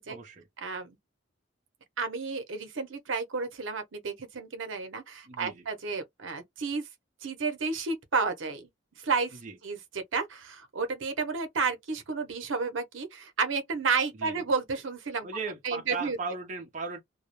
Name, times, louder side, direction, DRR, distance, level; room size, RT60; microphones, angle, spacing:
voice 1, 0.1-0.5 5.3-5.7 9.3-9.6 14.1-14.5 15.2-17.0, right 4 dB, 40° right, 0.5 m, -37 dB
voice 2, 0.6-1.0 2.0-6.9 7.2-8.7 9.0-15.3 15.6-16.2, right 4 dB, 85° right, 0.7 m, -31 dB
2.2 x 2.0 x 2.9 m
head